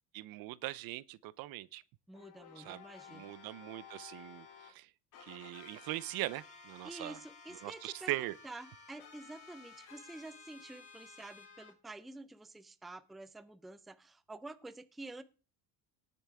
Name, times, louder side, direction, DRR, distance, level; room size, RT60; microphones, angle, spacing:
voice 1, 0.1-1.8 2.6-2.8 3.1-4.9 5.2-7.2 7.6-8.4, right 18 dB, 65° right, 0.6 m, -41 dB
sound 1, 2.1-4.7 5.1-11.7, left 6 dB, 50° left, 3.3 m, -55 dB
voice 2, 2.1-3.3 4.2-4.3 6.8-15.2, right 2 dB, ahead, 0.4 m, -49 dB
19.0 x 6.9 x 3.5 m
cardioid pair, 125°, 39 cm